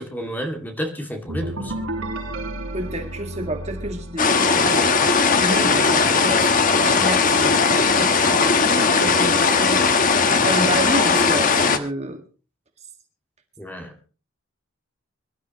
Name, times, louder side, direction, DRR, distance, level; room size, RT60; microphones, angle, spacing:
voice 1, 0.0-1.7 13.6-13.9, equal, 10° left, 3 dB, 2.3 m, -30 dB
sound 1, 1.3-5.0, right 1 dB, 85° right, 5.0 m, -32 dB
voice 2, 2.7-6.5 6.8-9.8 10.4-12.2, right 1 dB, 30° right, 5 dB, 1.8 m, -30 dB
sound 2, 4.2-11.8, left 4 dB, 40° left, 1.2 m, -18 dB
24.0 x 12.5 x 3.0 m, 0.35 s
head